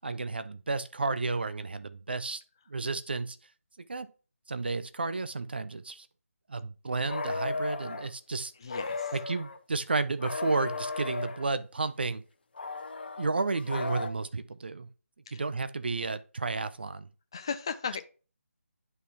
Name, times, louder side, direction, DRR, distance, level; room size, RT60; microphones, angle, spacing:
voice 1, 0.0-2.4 2.7-3.4 3.9-4.1 4.5-6.1 6.5-8.5 9.1-12.2 13.2-14.9 15.3-17.1, right 3 dB, 45° right, 0.5 m, -32 dB
sound 1, 7.1-8.1 8.7-9.6 10.2-11.5 12.6-14.1, left 4 dB, 40° left, 0.8 m, -35 dB
voice 2, 8.6-9.1 15.3-15.4 17.3-18.0, left 6 dB, 20° left, 0.3 m, -36 dB
10.5 x 3.9 x 2.9 m
figure-of-eight pair, 155°, 8 cm